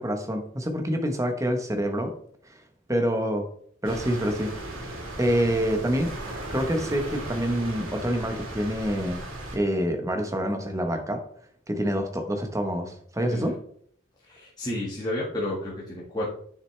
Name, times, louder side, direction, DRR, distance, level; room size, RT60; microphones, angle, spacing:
voice 1, 0.0-2.1 2.9-3.5 3.8-4.9 5.2-6.1 6.5-9.2 9.5-11.2 11.7-13.6, equal, 15° right, 5 dB, 1.1 m, -27 dB
sound 1, 3.8-9.6, right 1 dB, 90° right, 3.2 m, -36 dB
voice 2, 14.2-16.3, left 1 dB, 20° left, -7 dB, 1.7 m, -31 dB
10.0 x 6.5 x 3.3 m, 0.62 s
head